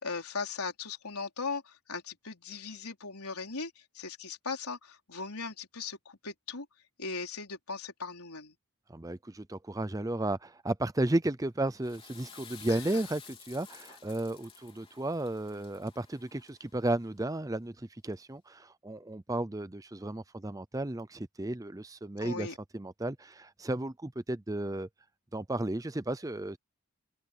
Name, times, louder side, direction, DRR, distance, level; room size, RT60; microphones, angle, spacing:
voice 1, 0.0-6.7 7.0-8.5 12.7-13.0 22.2-22.6, left 4 dB, 90° left, 4.5 m, -38 dB
voice 2, 8.9-22.5 22.7-24.9 25.3-26.6, right 1 dB, 15° right, 0.5 m, -34 dB
Water / Toilet flush, 11.6-16.9, left 7 dB, 25° left, 4.0 m, -52 dB
head